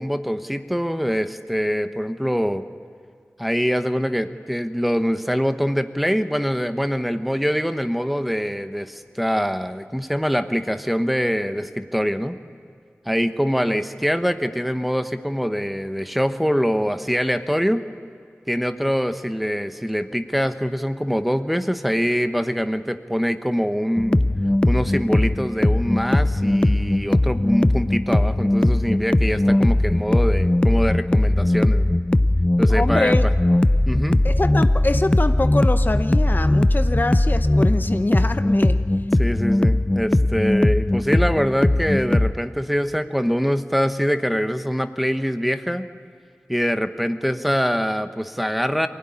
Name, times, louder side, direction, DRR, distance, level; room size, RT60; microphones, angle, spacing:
voice 1, 0.0-2.6 3.4-12.4 13.0-17.8 18.5-24.2 24.7-32.0 32.6-33.1 33.9-34.2 39.1-45.9 46.5-48.9, equal, ahead, 9 dB, 1.1 m, -24 dB
sound 1, 24.0-42.3, left 1 dB, 20° left, 0.5 m, -19 dB
voice 2, 32.7-33.3 34.2-38.8, left 2 dB, 45° left, 9 dB, 0.8 m, -24 dB
23.5 x 16.5 x 9.9 m, 2.4 s
wide cardioid pair, 50°, 5 cm